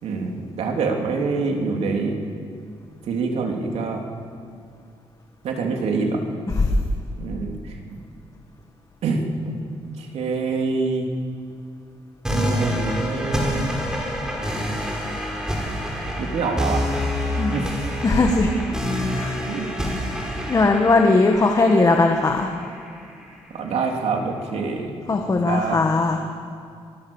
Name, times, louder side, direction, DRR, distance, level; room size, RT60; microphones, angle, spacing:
voice 1, 0.0-2.2 3.1-4.0 5.4-6.2 7.2-7.5 9.0-9.5 10.0-11.1 12.3-13.7 16.2-16.8 17.5-17.7 19.5-19.7 23.5-24.9 25.3-25.8, right 4 dB, 80° right, 1 dB, 3.5 m, -25 dB
sound 1, 12.2-23.2, equal, 5° right, 5.4 m, -27 dB
voice 2, 17.4-17.7 18.0-18.5 19.1-19.4 20.5-22.5 25.1-26.2, left 3 dB, 35° left, 3 dB, 1.7 m, -19 dB
26.5 x 20.5 x 7.3 m, 2.3 s
cardioid pair, 105°, 11 cm